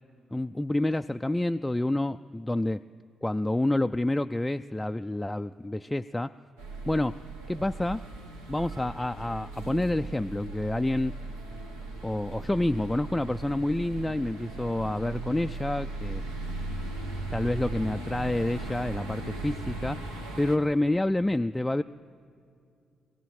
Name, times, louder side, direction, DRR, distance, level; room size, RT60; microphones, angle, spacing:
voice 1, 0.3-2.8 3.2-6.3 6.9-7.2 7.5-8.0 8.5-11.1 12.0-16.2 17.3-20.0 20.4-21.8, left 1 dB, 15° left, 8 dB, 0.3 m, -28 dB
sound 1, 6.6-20.6, right 2 dB, 80° right, 1.2 m, -38 dB
25.0 x 16.5 x 3.2 m, 2.4 s
figure-of-eight pair, 40°, 0 cm